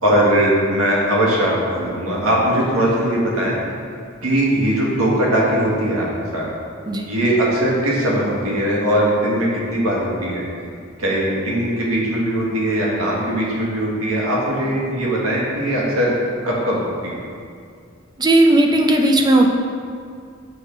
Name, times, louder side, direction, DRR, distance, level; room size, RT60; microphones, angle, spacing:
voice 1, 0.0-3.6 4.2-6.1 6.3-6.5 7.0-10.4 11.0-16.2 16.4-17.2, right 1 dB, 90° right, -5 dB, 1.6 m, -20 dB
voice 2, 18.2-19.5, right 1 dB, 20° right, 3 dB, 0.5 m, -15 dB
6.8 x 3.4 x 5.2 m, 2.2 s
head